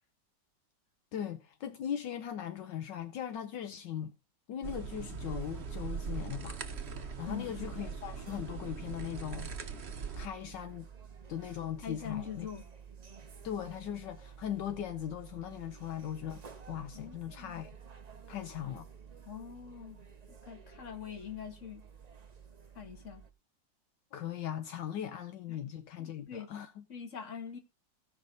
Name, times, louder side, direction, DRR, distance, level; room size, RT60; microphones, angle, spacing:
voice 1, 1.1-4.1 4.5-6.6 7.2-9.5 10.2-10.9 11.3-12.5 13.4-17.7 18.3-18.9 24.1-26.8, left 10 dB, 75° left, 1.4 m, -39 dB
sound 1, 4.6-10.3, right 6 dB, 40° right, 1.0 m, -41 dB
sound 2, 5.3-23.3, right 6 dB, 75° right, 0.3 m, -52 dB
voice 2, 7.3-7.7 11.8-12.6 16.9-17.5 19.3-20.0 20.4-21.8 22.8-23.2 25.5-25.6 26.0-26.5 26.9-27.6, left 8 dB, 40° left, 1.9 m, -43 dB
16.5 x 5.7 x 3.9 m
omnidirectional pair, 2.0 m